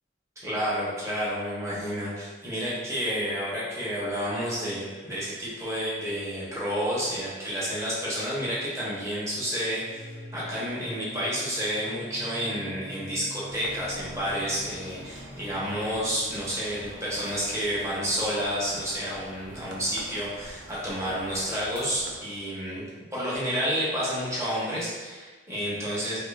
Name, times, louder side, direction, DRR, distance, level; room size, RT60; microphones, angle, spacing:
voice 1, 0.4-22.9 23.1-26.2, equal, 15° right, -8 dB, 0.9 m, -30 dB
sound 1, 9.9-18.7, equal, 30° left, 0.4 m, -45 dB
sound 2, 13.5-22.2, right 1 dB, 85° right, 0.5 m, -46 dB
3.6 x 3.0 x 2.4 m, 1.4 s
head